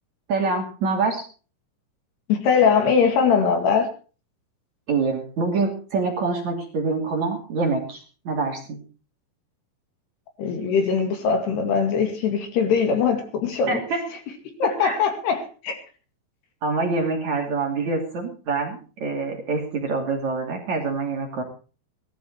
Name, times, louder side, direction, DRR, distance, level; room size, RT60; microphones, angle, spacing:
voice 1, 0.3-1.2 4.9-8.8 13.7-14.0 14.8-15.0 16.6-21.4, right 4 dB, 45° right, 3.5 m, -25 dB
voice 2, 2.3-3.9 10.4-13.8 14.6-15.8, left 6 dB, 65° left, 4.1 m, -21 dB
18.5 x 13.0 x 4.5 m
omnidirectional pair, 5.5 m